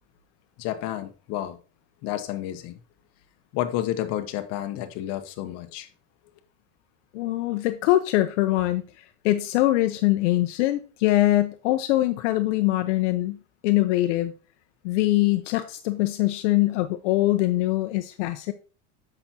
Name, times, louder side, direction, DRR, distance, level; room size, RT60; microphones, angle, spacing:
voice 1, 0.6-1.6 2.0-2.8 3.5-5.9, left 13 dB, 45° left, 0.9 m, -30 dB
voice 2, 7.1-13.4 13.6-14.3 14.8-18.5, left 16 dB, 65° left, 0.7 m, -23 dB
7.8 x 5.9 x 2.8 m
supercardioid pair, 150°, 37 cm